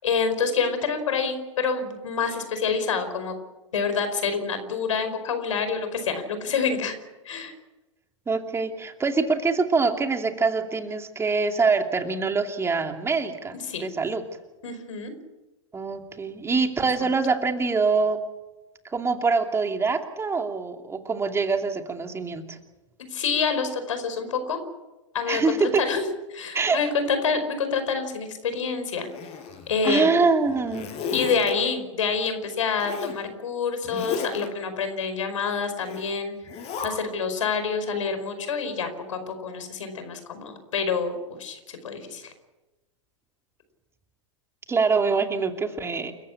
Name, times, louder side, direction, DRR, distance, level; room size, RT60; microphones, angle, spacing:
voice 1, 0.0-3.3 3.7-7.0 7.2-7.5 13.7-13.9 14.6-15.1 23.1-24.6 25.1-26.0 26.3-29.1 29.7-30.2 31.1-42.3, left 5 dB, 75° left, 9 dB, 5.1 m, -27 dB
voice 2, 8.3-14.2 15.7-18.2 18.9-22.6 25.3-25.8 26.5-26.8 29.8-30.9 44.7-46.1, right 4 dB, 15° right, 5 dB, 2.7 m, -24 dB
Zipper (clothing), 29.0-30.0 30.4-31.5 32.8-33.2 33.8-34.5 35.8-36.1 36.5-36.9, left 6 dB, 40° left, 6.1 m, -34 dB
29.5 x 15.0 x 8.6 m, 1.1 s
hypercardioid pair, 105°, 16 cm